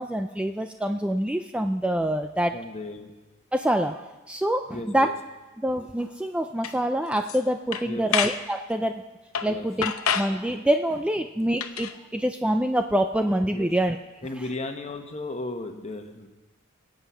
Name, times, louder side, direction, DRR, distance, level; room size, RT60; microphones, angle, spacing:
voice 1, 0.0-2.5 3.5-5.1 5.6-9.0 9.4-14.0, right 1 dB, 5° right, 6 dB, 0.4 m, -26 dB
voice 2, 2.5-3.1 4.7-5.1 7.8-8.1 9.4-9.7 13.5-13.7 14.2-16.3, left 2 dB, 30° left, 5 dB, 1.2 m, -35 dB
sound 1, 6.6-6.8 7.2-7.4 7.7-8.4 9.3-9.5 9.8-10.4 11.6-11.9, left 8 dB, 90° left, 0.8 m, -27 dB
23.5 x 8.0 x 5.6 m, 1.2 s
head